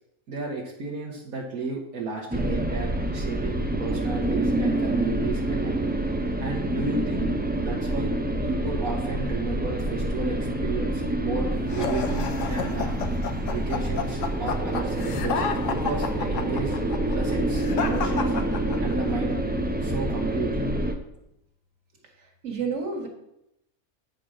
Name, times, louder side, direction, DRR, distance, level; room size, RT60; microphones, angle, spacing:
voice 1, 0.3-5.8 6.4-8.1 8.4-12.9 13.5-16.8 17.1-18.3 18.8-20.7, right 4 dB, 75° right, -1 dB, 1.5 m, -33 dB
sound 1, 2.3-20.9, right 1 dB, 15° right, 0.4 m, -27 dB
sound 2, 11.7-19.1, left 6 dB, 60° left, 1.1 m, -31 dB
voice 2, 22.2-23.1, right 5 dB, 50° right, 0 dB, 2.0 m, -30 dB
8.7 x 5.2 x 6.2 m, 0.85 s
omnidirectional pair, 1.6 m